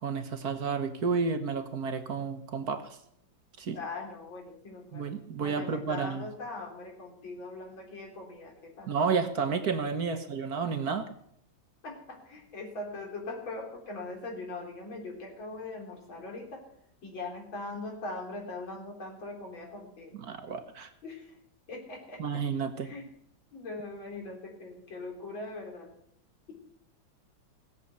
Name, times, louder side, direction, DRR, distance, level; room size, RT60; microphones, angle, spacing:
voice 1, 0.0-3.0 3.6-3.8 4.9-6.2 8.9-11.1 20.2-20.9 22.2-22.9, right 5 dB, 55° right, 8 dB, 1.5 m, -31 dB
voice 2, 3.7-5.1 5.4-8.9 10.1-10.2 11.8-16.6 17.0-20.2 21.0-21.4 21.7-22.2 22.8-23.1 23.5-25.9, left 2 dB, 80° left, 1 dB, 4.1 m, -41 dB
17.5 x 7.4 x 8.1 m, 0.70 s
omnidirectional pair, 2.1 m